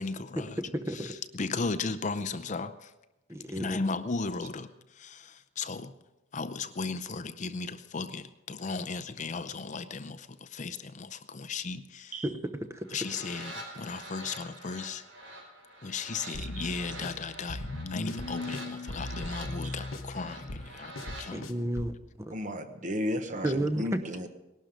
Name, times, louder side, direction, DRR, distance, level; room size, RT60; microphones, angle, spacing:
voice 1, 0.0-0.6 0.9-2.9 3.5-5.9 6.3-12.2 12.9-15.0 15.8-21.5, left 4 dB, 35° left, 12 dB, 0.6 m, -36 dB
voice 2, 0.7-1.1 3.3-3.8 12.2-12.9 21.3-22.3 23.4-24.0, right 1 dB, 15° right, 9 dB, 0.8 m, -32 dB
sound 1, 12.8-21.3, right 1 dB, 85° right, 5.3 m, -46 dB
voice 3, 16.2-16.7 19.6-19.7 22.3-24.3, left 1 dB, 40° right, 8 dB, 1.1 m, -35 dB
sound 2, 16.3-22.0, left 2 dB, 90° left, 1.0 m, -38 dB
19.0 x 12.0 x 5.1 m, 0.99 s
head